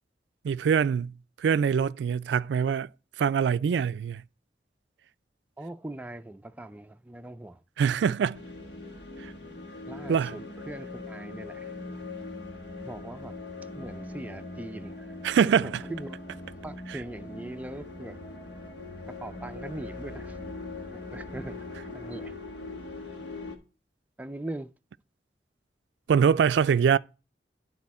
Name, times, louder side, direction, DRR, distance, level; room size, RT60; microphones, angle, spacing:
voice 1, 0.4-2.9 3.2-4.2 7.8-8.4 9.2-9.3 10.1-10.4 15.2-15.8 26.1-27.0, right 7 dB, 85° right, 0.3 m, -24 dB
voice 2, 5.6-7.6 9.9-11.7 12.8-13.4 13.8-15.2 15.6-16.2 16.6-18.2 19.1-20.4 20.9-21.6 21.9-22.3 24.2-24.7, right 1 dB, 10° right, 0.4 m, -40 dB
sound 1, 8.3-23.6, left 2 dB, 90° left, 1.7 m, -41 dB
12.0 x 4.2 x 4.2 m
head